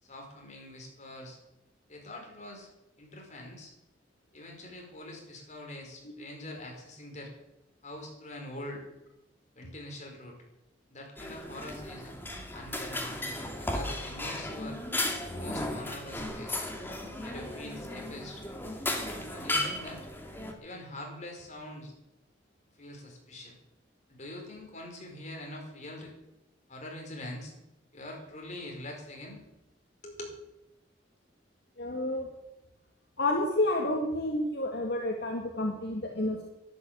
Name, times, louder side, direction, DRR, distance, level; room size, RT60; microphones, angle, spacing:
voice 1, 0.0-1.4 1.9-2.7 3.0-3.7 4.3-7.3 7.8-8.8 9.6-10.4 10.9-12.2 12.5-13.2 13.6-14.8 15.4-16.6 17.2-18.5 19.1-20.1 20.6-21.9 22.8-23.6 24.1-26.1 26.7-27.5 27.9-29.4 30.0-30.3, left 1 dB, 40° left, 1 dB, 5.1 m, -44 dB
sound 1, 11.2-20.5, left 1 dB, 10° left, 2.3 m, -35 dB
voice 2, 31.8-32.3 33.2-36.4, left 1 dB, 65° left, 1 dB, 2.1 m, -30 dB
12.0 x 11.5 x 9.0 m, 0.93 s
head